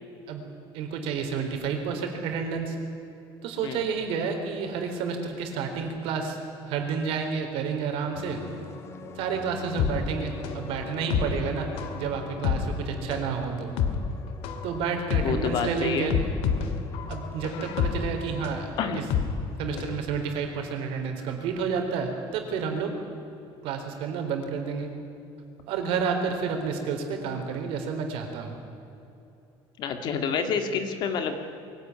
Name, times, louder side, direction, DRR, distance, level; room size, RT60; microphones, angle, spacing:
voice 1, 0.7-2.8 3.4-6.4 6.7-8.4 9.2-11.7 11.9-13.7 14.6-16.1 17.1-19.0 19.6-22.9 23.6-24.9 25.7-28.6, right 6 dB, 65° right, 4 dB, 4.1 m, -30 dB
sound 1, 8.1-21.5, left 4 dB, 25° left, 1.8 m, -45 dB
sound 2, 9.8-20.0 20.3-20.4, left 7 dB, 70° left, 2.2 m, -29 dB
voice 2, 15.2-16.1 18.8-19.1 19.7-19.8 29.8-31.4, left 6 dB, 45° left, 7 dB, 2.3 m, -28 dB
23.0 x 17.0 x 9.8 m, 2.8 s
cardioid pair, 170°, 10 cm